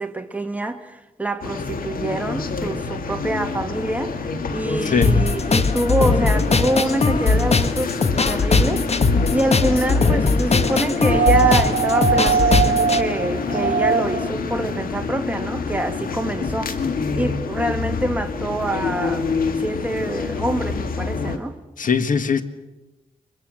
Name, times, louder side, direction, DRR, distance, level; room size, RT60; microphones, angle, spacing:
voice 1, 0.0-16.9 17.2-19.3 19.6-21.6, right 1 dB, 10° right, 1.8 m, -26 dB
sound 1, 1.4-21.4, left 5 dB, 85° left, 2.0 m, -27 dB
voice 2, 4.8-5.2 21.8-22.4, left 5 dB, 70° left, 1.6 m, -20 dB
sound 2, 5.0-13.0, left 4 dB, 45° left, 1.3 m, -20 dB
sound 3, 11.1-14.3 15.7-15.8, right 6 dB, 75° right, 0.9 m, -20 dB
23.5 x 22.5 x 7.7 m
cardioid pair, 65°, 14 cm